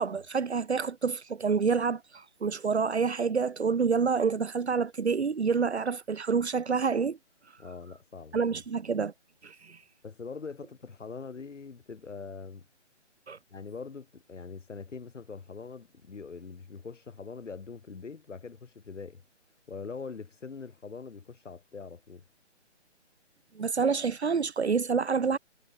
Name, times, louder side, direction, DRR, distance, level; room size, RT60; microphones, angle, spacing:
voice 1, 0.0-7.2 8.3-9.1 9.4-9.8 13.3-13.4 23.5-25.4, right 5 dB, 65° right, 1.6 m, -28 dB
voice 2, 7.6-8.4 10.0-12.6 13.5-19.2 19.7-22.2, left 5 dB, 85° left, 2.6 m, -43 dB
hypercardioid pair, 180°, 36 cm